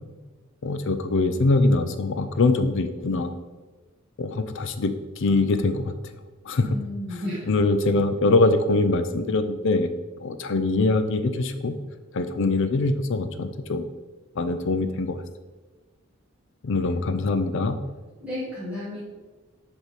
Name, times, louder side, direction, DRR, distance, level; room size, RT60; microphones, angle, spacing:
voice 1, 0.6-3.3 4.2-6.0 6.5-6.8 7.1-9.9 10.2-11.7 12.1-13.8 14.4-15.2 16.6-17.8, left 3 dB, 60° left, 10 dB, 0.5 m, -23 dB
voice 2, 6.6-7.6 18.2-19.0, left 1 dB, 5° right, -10 dB, 1.5 m, -33 dB
6.5 x 3.7 x 4.7 m, 1.3 s
head